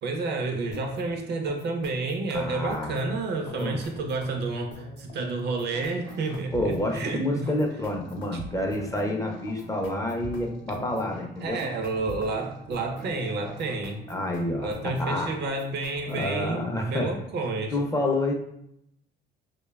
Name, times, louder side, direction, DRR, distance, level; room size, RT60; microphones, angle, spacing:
voice 1, 0.0-7.5 11.4-14.0 14.6-17.8, right 3 dB, 55° right, 4 dB, 0.5 m, -30 dB
sound 1, 0.7-16.6, left 2 dB, 70° left, 0.5 m, -47 dB
voice 2, 2.3-3.0 3.5-3.8 6.5-11.6 14.1-15.3 16.1-17.1 17.7-18.3, left 1 dB, 15° left, 1 dB, 0.4 m, -28 dB
sound 2, 5.7-15.6, right 1 dB, 75° right, 0.9 m, -44 dB
2.7 x 2.1 x 2.3 m, 0.75 s
cardioid pair, 85°, 20 cm